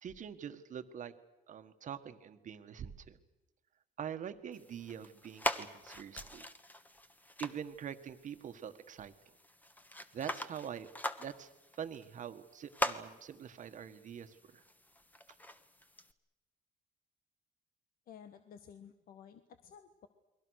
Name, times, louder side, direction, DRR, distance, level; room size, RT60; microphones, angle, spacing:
voice 1, 0.0-1.1 1.5-3.2 4.0-6.5 7.4-9.1 10.1-10.9 11.2-14.6, right 8 dB, 50° right, 10 dB, 1.6 m, -44 dB
sound 1, 4.5-16.1, left 1 dB, 10° left, 1.3 m, -43 dB
voice 2, 18.1-20.1, left 8 dB, 60° left, 8 dB, 1.4 m, -54 dB
29.5 x 22.0 x 6.5 m, 1.1 s
cardioid pair, 110°, 17 cm